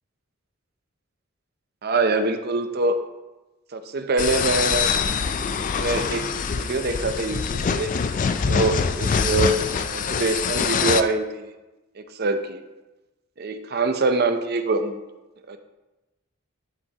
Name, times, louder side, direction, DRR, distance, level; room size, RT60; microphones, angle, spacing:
voice 1, 1.8-3.0 3.7-4.9 5.8-6.2 6.5-7.9 8.5-9.6 9.9-11.5 12.0-12.6 13.4-15.0 15.5-15.6, right 3 dB, 50° right, 8 dB, 0.6 m, -24 dB
sound 1, 4.2-11.0, left 6 dB, 40° left, 0.3 m, -24 dB
11.5 x 5.3 x 2.9 m, 1.1 s
head